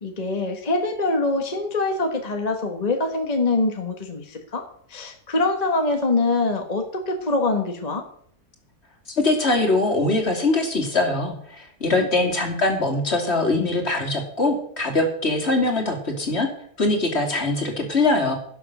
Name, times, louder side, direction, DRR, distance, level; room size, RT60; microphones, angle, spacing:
voice 1, 0.0-4.6 4.9-8.0 12.2-12.3, left 3 dB, 25° left, 4 dB, 1.5 m, -24 dB
voice 2, 9.2-16.5 16.8-18.4, left 2 dB, 40° left, 3 dB, 3.0 m, -22 dB
16.0 x 7.3 x 6.7 m, 0.66 s
omnidirectional pair, 1.7 m